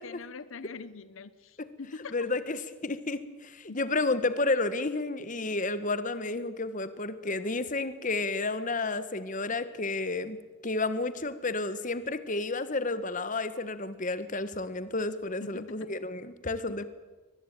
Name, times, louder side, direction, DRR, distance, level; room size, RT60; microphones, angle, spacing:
voice 1, 0.0-2.1 3.7-3.8 15.4-15.9 16.7-16.8, left 4 dB, 85° left, 15 dB, 0.8 m, -43 dB
voice 2, 2.1-10.4 10.6-16.9, left 3 dB, 40° left, 13 dB, 1.5 m, -31 dB
23.0 x 20.5 x 9.1 m, 1.3 s
head